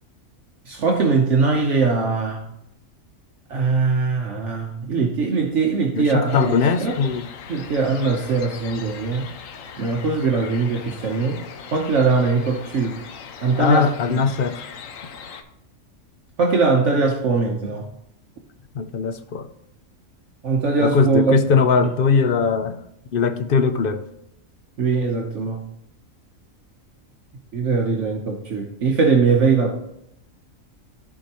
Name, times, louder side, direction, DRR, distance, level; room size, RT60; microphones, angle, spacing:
voice 1, 0.7-2.4 3.5-6.5 6.8-6.9 7.5-9.3 9.8-11.4 11.7-13.0 13.4-14.2 16.4-17.9 20.4-21.4 21.8-21.9 24.8-25.6 27.5-29.8, right 4 dB, 65° right, 1.1 m, -21 dB
voice 2, 5.9-7.3 13.5-14.7 18.7-19.5 20.8-22.8 23.1-24.0, left 5 dB, 60° left, 0.6 m, -20 dB
sound 1, 6.3-15.4, left 6 dB, 80° left, 1.1 m, -39 dB
14.0 x 4.8 x 2.9 m
omnidirectional pair, 1.4 m